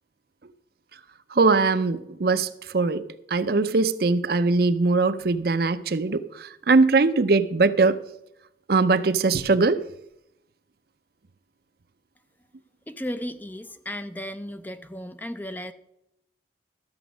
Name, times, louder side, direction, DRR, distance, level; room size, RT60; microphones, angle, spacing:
voice 1, 1.3-3.0 3.3-8.0 8.7-9.8, right 3 dB, 55° right, 12 dB, 0.6 m, -21 dB
voice 2, 12.9-15.7, equal, 10° left, 9 dB, 0.5 m, -35 dB
13.0 x 7.0 x 6.1 m, 0.81 s
head